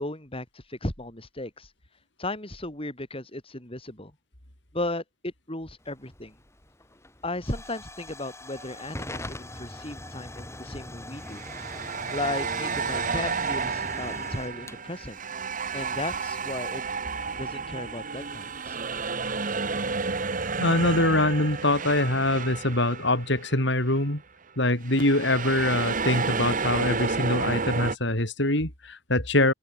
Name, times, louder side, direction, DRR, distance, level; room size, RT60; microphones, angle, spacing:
voice 1, 0.0-1.7 2.2-4.1 4.7-6.4 7.2-11.4 12.1-15.2 15.7-16.8 17.3-18.8, left 2 dB, 30° left, 7.8 m, -35 dB
Hiss / Fire / Tick, 5.8-16.2, left 1 dB, 15° left, 7.1 m, -42 dB
sound 1, 8.6-8.8 11.3-23.6 23.9-24.1 24.8-28.0, right 4 dB, 45° right, 1.8 m, -31 dB
voice 2, 20.6-24.2 24.6-29.5, left 1 dB, 65° left, 6.5 m, -24 dB
open air
head